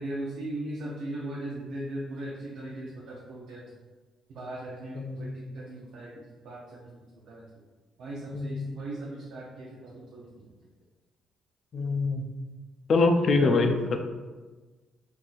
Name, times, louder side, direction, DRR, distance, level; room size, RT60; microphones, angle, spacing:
voice 1, 0.0-3.7 4.3-7.0 7.3-7.4 8.0-10.5 13.4-13.7, right 1 dB, 80° right, -5 dB, 0.5 m, -38 dB
voice 2, 4.9-5.4 8.3-8.8 11.7-12.3 12.9-14.0, left 3 dB, 55° left, 5 dB, 0.4 m, -25 dB
3.8 x 2.6 x 2.4 m, 1.3 s
cardioid pair, 90°, 0 cm